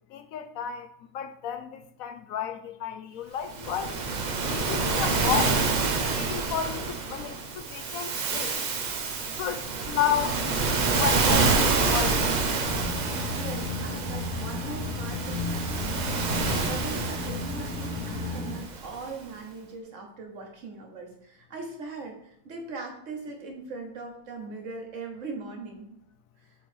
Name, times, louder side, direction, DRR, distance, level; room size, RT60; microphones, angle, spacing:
voice 1, 0.1-3.9 4.5-5.6 6.1-8.6 9.4-10.4 11.0-11.5 11.8-12.5, left 9 dB, 70° left, 0.9 m, -32 dB
Waves surf, 3.5-19.0, right 4 dB, 85° right, 0.4 m, -28 dB
sound 1, 12.6-18.6, left 3 dB, 10° left, 1.2 m, -34 dB
voice 2, 13.4-15.5 15.7-26.0, right 3 dB, 55° right, 1.4 m, -40 dB
7.0 x 3.1 x 4.3 m
omnidirectional pair, 1.7 m